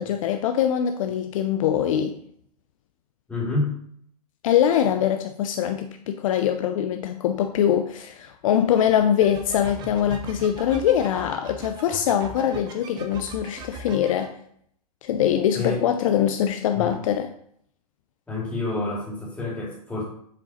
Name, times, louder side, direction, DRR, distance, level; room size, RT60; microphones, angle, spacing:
voice 1, 0.0-2.2 4.4-14.3 15.0-17.3, left 9 dB, 55° left, 6 dB, 0.6 m, -23 dB
voice 2, 3.3-3.7 15.5-15.8 16.7-17.0 18.3-20.0, left 2 dB, 5° left, -5 dB, 2.4 m, -28 dB
sound 1, 9.2-14.3, right 3 dB, 20° right, 0.7 m, -39 dB
7.6 x 3.6 x 4.2 m, 0.66 s
hypercardioid pair, 140°, 20 cm